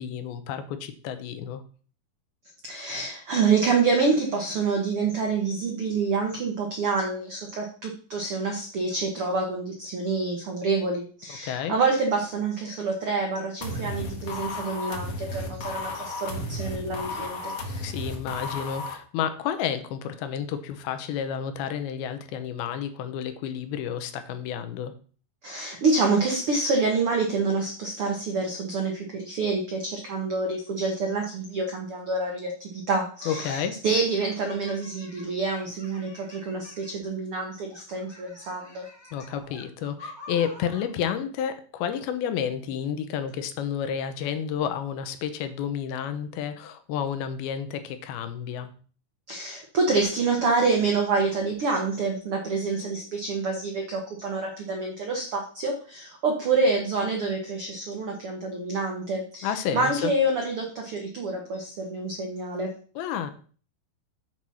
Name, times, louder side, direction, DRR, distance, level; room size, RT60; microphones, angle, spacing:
voice 1, 0.0-1.6 11.4-11.8 17.8-24.9 33.3-33.8 39.1-48.7 59.4-60.1 63.0-63.3, left 8 dB, 80° left, 9 dB, 2.7 m, -31 dB
voice 2, 2.6-17.8 25.4-38.8 49.3-62.7, right 3 dB, 85° right, 1 dB, 1.2 m, -27 dB
sound 1, 13.6-18.9, left 2 dB, 65° left, 1.6 m, -34 dB
sound 2, 33.2-33.6 34.2-37.0 37.7-40.9, left 1 dB, 15° left, 0.8 m, -46 dB
7.9 x 4.2 x 6.1 m, 0.41 s
omnidirectional pair, 4.4 m